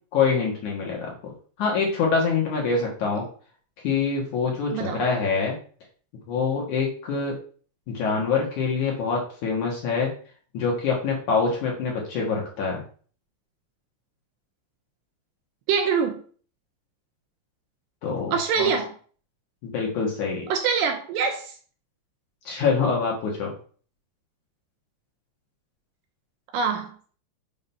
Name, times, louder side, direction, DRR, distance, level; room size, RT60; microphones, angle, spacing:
voice 1, 0.1-3.3 3.8-5.6 6.3-7.4 7.9-10.1 10.5-12.8 18.0-18.7 19.6-20.5 22.4-23.5, left 5 dB, 60° left, -2 dB, 2.1 m, -25 dB
voice 2, 15.7-16.2 18.3-18.9 20.5-21.5 26.5-26.9, right 6 dB, 80° right, 4 dB, 2.6 m, -24 dB
7.2 x 3.8 x 5.5 m, 0.43 s
omnidirectional pair, 5.3 m